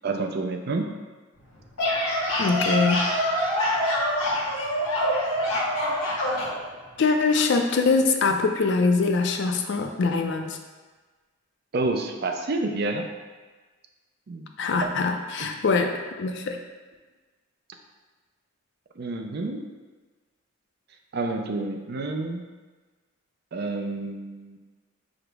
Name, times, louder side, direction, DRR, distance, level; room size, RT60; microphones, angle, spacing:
voice 1, 0.0-0.9 11.7-13.1 14.3-14.5 14.8-14.9 15.4-15.5 19.0-19.7 21.1-22.4 23.5-24.6, right 3 dB, 50° right, 4 dB, 0.4 m, -29 dB
sound 1, 1.5-6.5, equal, 90° left, 1.1 m, -25 dB
voice 2, 2.4-3.1 7.0-10.6 14.6-16.6, left 4 dB, 55° left, 5 dB, 0.4 m, -23 dB
4.9 x 2.0 x 4.6 m, 1.3 s
head